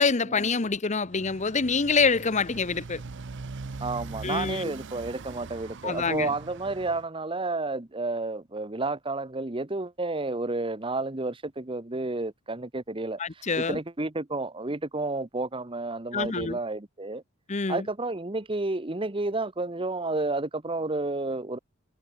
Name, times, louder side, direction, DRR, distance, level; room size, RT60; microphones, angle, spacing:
voice 1, 0.0-3.0 4.2-4.6 5.8-6.3 13.2-13.8 16.1-16.6 17.5-17.8, left 4 dB, 35° left, 0.8 m, -26 dB
Motorcycle, 1.0-7.0, right 3 dB, 55° right, 0.7 m, -41 dB
voice 2, 3.8-17.2 17.7-21.6, right 2 dB, 25° right, 1.1 m, -31 dB
head